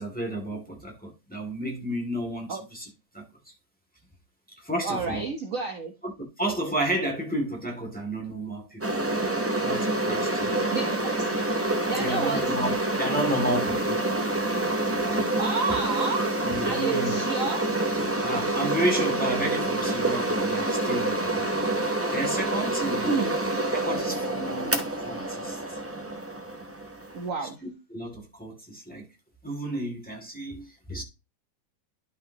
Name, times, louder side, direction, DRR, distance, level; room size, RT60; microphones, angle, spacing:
voice 1, 0.0-2.9 3.1-3.5 4.6-5.3 6.0-6.1 6.4-8.8 9.6-10.5 11.9-14.0 16.4-17.2 18.2-23.2 23.7-25.8 27.6-29.1 29.4-31.0, right 1 dB, 5° left, 2.4 m, -32 dB
voice 2, 4.8-5.9 10.7-11.3 11.9-12.4 15.4-16.4 16.6-17.6 23.1-23.3 27.1-27.6, right 4 dB, 50° right, 1.3 m, -30 dB
sound 1, 8.8-27.3, right 2 dB, 15° right, 0.6 m, -27 dB
11.5 x 5.7 x 2.9 m
omnidirectional pair, 2.1 m